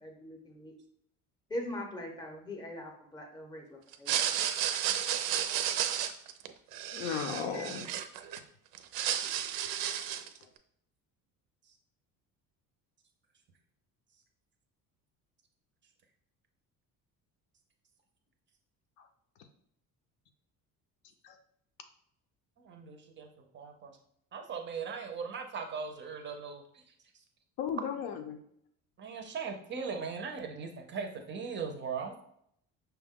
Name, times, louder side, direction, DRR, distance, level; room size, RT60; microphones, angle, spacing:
voice 1, 0.0-0.7 1.5-4.2, left 1 dB, 10° left, 2 dB, 0.6 m, -41 dB
sound 1, 3.9-8.4 8.7-10.4, right 10 dB, 85° right, 0.5 m, -32 dB
voice 2, 6.9-7.9 10.4-10.5 21.2-21.4 27.6-28.4, left 7 dB, 80° left, 6 dB, 0.7 m, -35 dB
voice 3, 22.6-24.0 24.3-26.9 29.0-32.2, right 5 dB, 35° right, 4 dB, 0.5 m, -39 dB
5.7 x 2.2 x 3.5 m, 0.70 s
cardioid pair, 160°, 35 cm